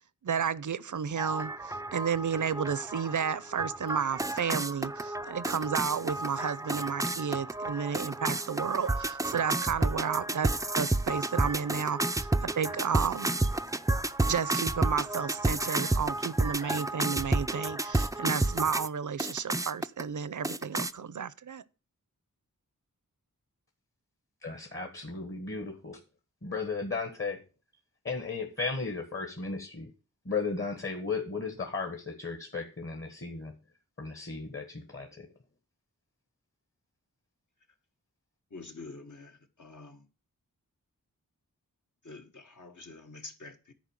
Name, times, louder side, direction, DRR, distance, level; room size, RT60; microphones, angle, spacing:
voice 1, 0.2-13.3 14.3-21.6, right 7 dB, 60° right, 0.6 m, -32 dB
sound 1, 1.2-18.9 19.2-20.0 20.4-20.9, right 2 dB, 10° right, 0.4 m, -31 dB
voice 2, 24.4-26.0 26.4-27.4 28.0-29.9 30.2-33.5 34.0-35.3, left 4 dB, 35° left, 1.5 m, -35 dB
voice 3, 38.5-40.1 42.0-43.7, left 3 dB, 60° left, 1.5 m, -47 dB
10.5 x 4.5 x 7.3 m
wide cardioid pair, 55°, 34 cm